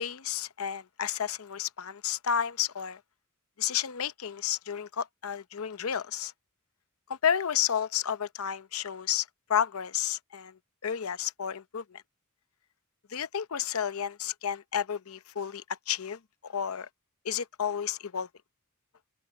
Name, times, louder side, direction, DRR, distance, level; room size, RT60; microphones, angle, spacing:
voice 1, 0.0-3.0 3.6-6.3 7.1-12.0 13.1-16.9 17.2-18.3, left 8 dB, 80° left, 0.7 m, -31 dB
open air
head